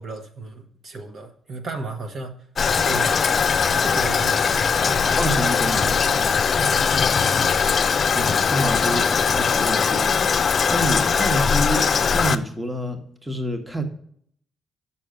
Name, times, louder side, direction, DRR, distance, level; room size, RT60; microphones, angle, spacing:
voice 1, 0.0-2.5 2.7-3.2 3.5-5.4 6.6-6.9, right 3 dB, 50° right, 4 dB, 1.0 m, -35 dB
Toilet flush, 2.6-12.4, left 6 dB, 45° left, 0.5 m, -20 dB
voice 2, 5.0-6.2 8.1-11.9 12.1-13.8, equal, 10° right, 6 dB, 1.1 m, -28 dB
6.2 x 5.7 x 5.0 m, 0.64 s
cardioid pair, 90°, 0 cm